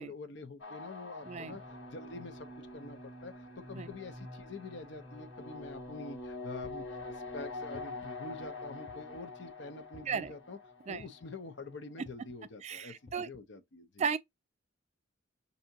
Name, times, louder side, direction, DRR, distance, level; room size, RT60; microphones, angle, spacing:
voice 1, 0.0-1.6 1.9-2.5 2.7-10.6 10.9-14.1, left 3 dB, 65° left, 0.7 m, -46 dB
sound 1, 0.6-11.7, left 2 dB, 90° left, 1.5 m, -45 dB
voice 2, 1.2-1.6 3.8-3.9 10.1-10.3 10.9-11.0 12.6-13.3 14.0-14.2, right 6 dB, 35° right, 0.3 m, -35 dB
sound 2, 6.6-7.1 7.7-8.2 8.9-9.3 9.9-10.3 11.0-11.4 12.0-12.4 13.1-13.4, left 3 dB, 35° left, 0.4 m, -55 dB
5.6 x 2.7 x 2.7 m
head